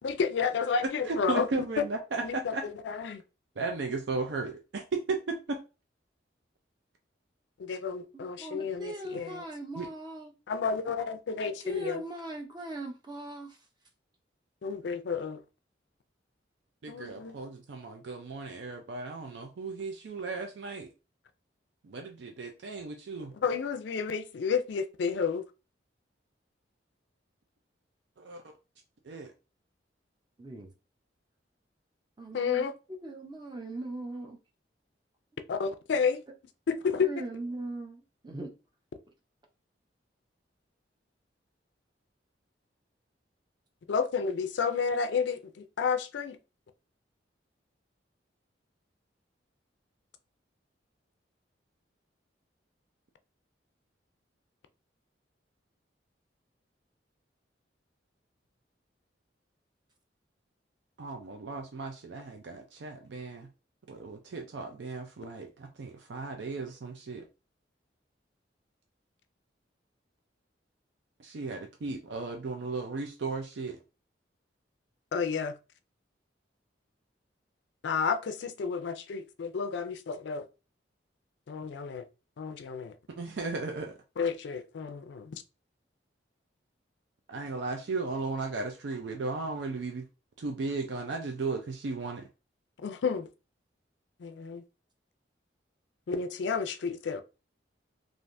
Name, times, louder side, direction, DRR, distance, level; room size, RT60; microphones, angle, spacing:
voice 1, 0.0-1.5 2.2-3.2 7.7-9.4 10.5-12.0 14.6-15.4 16.9-17.3 23.4-25.4 32.3-32.7 35.5-36.2 36.7-37.1 43.9-46.4 75.1-75.5 77.8-80.4 81.5-82.0 82.4-83.0 84.2-85.4 92.8-93.3 94.2-94.6 96.1-97.2, left 5 dB, 70° left, 0.4 m, -31 dB
voice 2, 1.1-2.6 3.6-5.6 9.8-9.9 16.8-20.9 21.8-23.3 28.2-28.4 29.0-29.3 61.0-63.5 63.9-67.2 71.2-73.8 83.2-83.9 87.3-90.0 90.4-92.3, right 3 dB, 70° right, 0.4 m, -35 dB
voice 3, 8.4-10.3 11.6-13.6 30.4-30.7 32.2-32.7 33.0-34.4 37.0-38.5, right 2 dB, 25° right, 0.6 m, -39 dB
3.3 x 2.5 x 2.6 m
head